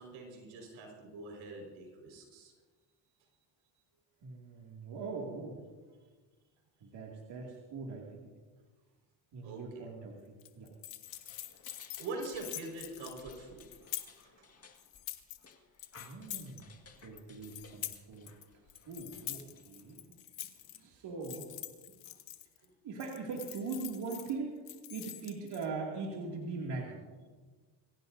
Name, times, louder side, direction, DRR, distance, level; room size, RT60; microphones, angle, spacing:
voice 1, 0.0-2.5 9.4-9.9 12.0-13.7 14.2-14.5 22.6-22.7, right 2 dB, 90° right, 1 dB, 5.0 m, -44 dB
voice 2, 4.2-5.6 6.8-8.3 9.3-10.7 15.9-16.7 17.0-21.6 21.9-22.0 22.8-24.6 24.9-27.0, right 4 dB, 65° right, -2 dB, 2.5 m, -41 dB
sound 1, 10.4-14.2 14.7-15.5 15.8-16.6 17.0-18.4 18.7-20.8 21.2-22.6 23.0-24.3 24.7-25.7, left 13 dB, 80° left, 1.3 m, -45 dB
sound 2, 11.0-20.1, left 5 dB, 35° left, 1.8 m, -59 dB
24.5 x 16.0 x 2.7 m, 1.4 s
cardioid pair, 100°, 44 cm